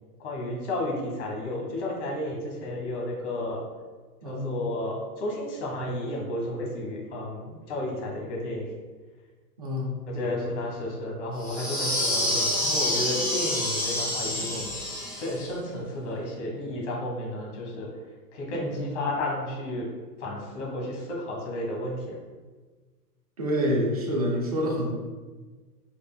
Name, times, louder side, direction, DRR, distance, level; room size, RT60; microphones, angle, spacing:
voice 1, 0.2-3.6 4.2-8.7 10.1-14.7 15.2-17.9 18.3-19.9 20.2-22.2, left 1 dB, 45° left, -2 dB, 1.4 m, -32 dB
voice 2, 4.2-4.5 9.6-9.9 18.5-18.8 23.4-25.0, equal, 25° right, -2 dB, 0.3 m, -27 dB
sound 1, 11.4-15.4, left 1 dB, 20° left, 1.3 m, -27 dB
4.9 x 4.2 x 2.2 m, 1.3 s
hypercardioid pair, 150°, 49 cm